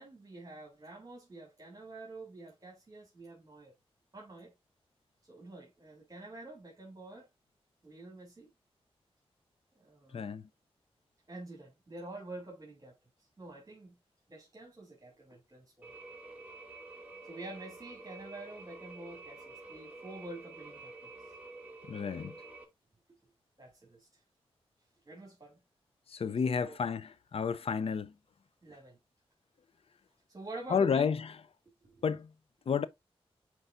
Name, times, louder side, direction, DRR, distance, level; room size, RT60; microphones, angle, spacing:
voice 1, 0.0-3.7 4.1-4.5 5.3-7.3 7.8-8.5 9.8-10.2 11.3-13.0 13.4-14.0 14.3-15.9 17.3-21.1 23.6-24.1 25.1-25.6 26.6-26.8 28.6-29.0 30.3-31.0 31.9-32.0, right 2 dB, 35° right, 2.8 m, -48 dB
sound 1, 15.8-22.6, right 3 dB, 15° right, 2.2 m, -49 dB
voice 2, 21.9-22.4 26.1-28.1 30.7-31.3 32.0-32.3 32.7-32.9, left 6 dB, 70° left, 0.6 m, -31 dB
8.1 x 4.7 x 2.5 m
cardioid pair, 65°, 10 cm